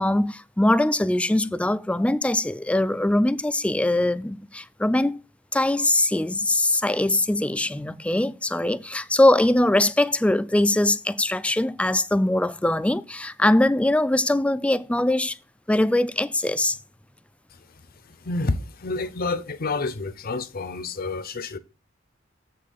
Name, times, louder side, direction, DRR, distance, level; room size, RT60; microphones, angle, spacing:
voice 1, 0.0-5.2 5.5-15.4 15.7-16.8, left 1 dB, 5° left, 0.3 m, -22 dB
voice 2, 18.2-21.6, left 3 dB, 50° left, 0.7 m, -29 dB
7.5 x 6.4 x 4.0 m
head